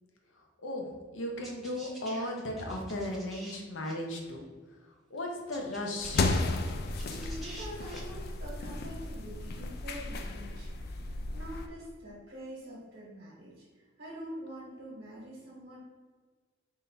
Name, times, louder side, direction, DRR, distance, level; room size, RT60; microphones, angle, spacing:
voice 1, 1.1-4.4 5.1-6.3, left 1 dB, 75° left, 1 dB, 0.7 m, -36 dB
sound 1, 1.4-3.5 3.8-3.9 5.2-5.3 5.5-8.0, right 2 dB, ahead, 0.7 m, -48 dB
sound 2, 6.0-11.7, left 3 dB, 55° left, 0.3 m, -34 dB
voice 2, 7.0-13.6 14.0-15.8, right 1 dB, 60° right, -6 dB, 1.2 m, -45 dB
3.8 x 2.7 x 3.3 m, 1.4 s
head